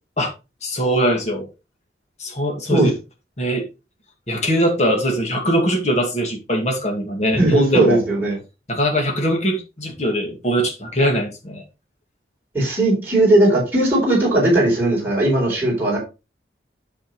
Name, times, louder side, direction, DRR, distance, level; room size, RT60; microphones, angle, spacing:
voice 1, 0.6-1.5 2.2-3.0 3.4-3.7 4.3-8.0 8.7-11.6, equal, 40° left, 2 dB, 2.1 m, -21 dB
voice 2, 7.3-8.4 12.5-16.0, right 1 dB, 10° right, -6 dB, 4.0 m, -17 dB
8.8 x 6.5 x 3.2 m, 0.28 s
head